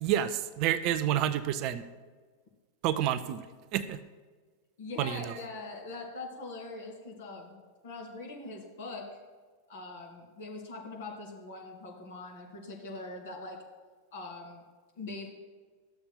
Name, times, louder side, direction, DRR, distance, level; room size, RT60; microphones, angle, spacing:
voice 1, 0.0-1.8 2.8-3.5 3.7-4.0 5.0-5.4, right 11 dB, 40° right, 13 dB, 0.4 m, -29 dB
voice 2, 4.8-9.0 9.7-13.6 14.1-14.6 15.0-15.3, left 3 dB, 60° left, -1 dB, 2.3 m, -42 dB
13.5 x 7.0 x 2.2 m, 1.4 s
figure-of-eight pair, 90°, 0 cm